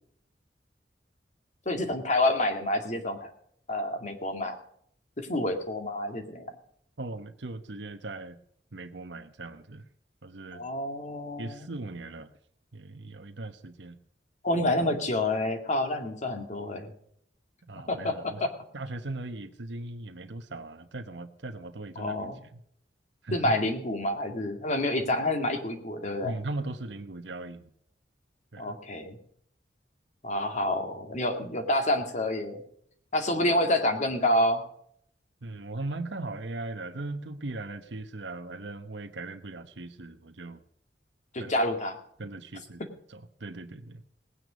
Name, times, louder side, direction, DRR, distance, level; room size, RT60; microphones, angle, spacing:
voice 1, 1.7-3.3 3.7-4.5 5.2-6.5 10.5-11.7 14.4-16.9 17.9-18.5 22.0-22.4 23.3-26.4 28.6-29.2 30.2-32.6 33.1-34.6 41.3-42.0, left 1 dB, 45° left, 5 dB, 2.2 m, -28 dB
voice 2, 7.0-8.4 8.7-9.8 10.2-10.6 11.4-12.3 12.7-13.9 17.7-18.4 18.7-22.6 23.2-23.5 26.2-27.7 28.5-28.7 35.4-40.6 41.4-41.5 42.2-42.8 43.1-44.0, right 2 dB, 80° right, 7 dB, 1.1 m, -39 dB
19.0 x 9.4 x 5.1 m, 0.67 s
head